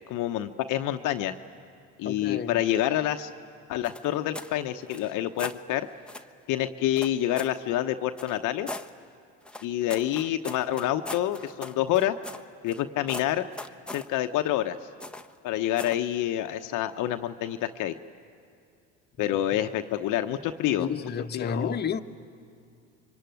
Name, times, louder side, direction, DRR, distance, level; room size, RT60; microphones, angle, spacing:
voice 1, 0.1-1.4 2.0-3.3 3.7-5.9 6.5-8.7 9.6-12.2 12.6-13.5 13.9-14.8 15.4-17.9 19.2-20.9 21.3-21.8, left 12 dB, 55° left, 1.0 m, -27 dB
voice 2, 2.0-2.6 19.2-19.3 19.5-19.6 20.8-22.0, left 6 dB, 30° left, 1.2 m, -31 dB
sound 1, 3.8-4.5 4.9-5.6 6.1-6.3 7.0-7.6 8.2-8.9 9.4-12.8 13.1-14.1 15.0-15.4 15.8-16.0, left 2 dB, 5° left, 1.0 m, -40 dB
26.5 x 24.0 x 9.3 m
hypercardioid pair, 75°, 36 cm